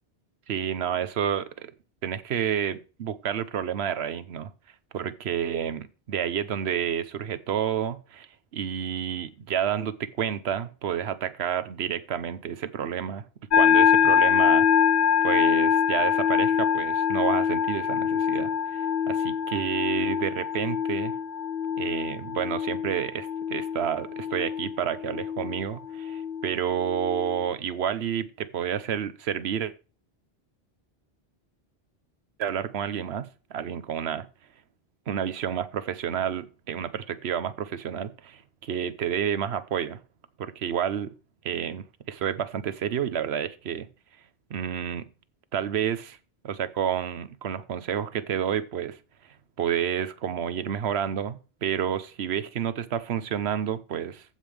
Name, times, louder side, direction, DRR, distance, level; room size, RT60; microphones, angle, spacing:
voice 1, 0.5-1.7 2.0-4.5 4.9-8.3 8.5-13.2 13.5-14.7 15.2-21.1 21.8-29.7 32.4-34.3 35.1-40.0 40.4-41.1 41.4-43.9 44.5-45.0 45.5-46.2 46.4-49.0 49.6-54.2, right 9 dB, 80° right, 1.0 m, -30 dB
sound 1, 13.5-27.4, left 8 dB, 90° left, 1.2 m, -24 dB
15.0 x 5.3 x 3.3 m
omnidirectional pair, 1.1 m